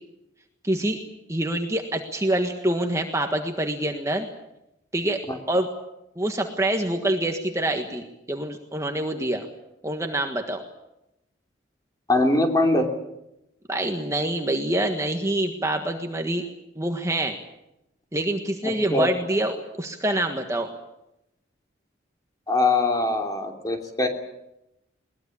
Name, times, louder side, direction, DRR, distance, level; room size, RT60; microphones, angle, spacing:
voice 1, 0.6-1.0 1.3-4.3 4.9-5.7 6.2-9.5 9.8-10.6 13.7-16.4 16.8-17.3 18.1-20.7, right 1 dB, 15° right, 4 dB, 1.5 m, -26 dB
voice 2, 12.1-12.9 18.6-19.1 22.5-24.1, left 2 dB, 20° left, 3 dB, 3.1 m, -22 dB
21.5 x 20.5 x 8.6 m, 0.87 s
head